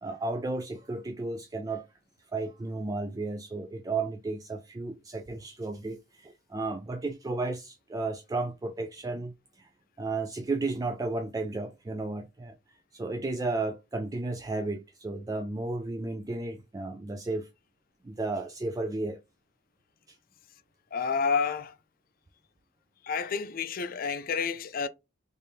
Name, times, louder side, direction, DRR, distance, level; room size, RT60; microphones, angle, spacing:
voice 1, 0.0-1.9 2.3-9.7 10.0-12.5 12.9-17.5 18.0-19.2, right 3 dB, 20° right, 0.3 m, -33 dB
voice 2, 20.9-21.8 23.0-24.9, left 5 dB, 50° left, 0.4 m, -29 dB
3.4 x 3.3 x 2.7 m
head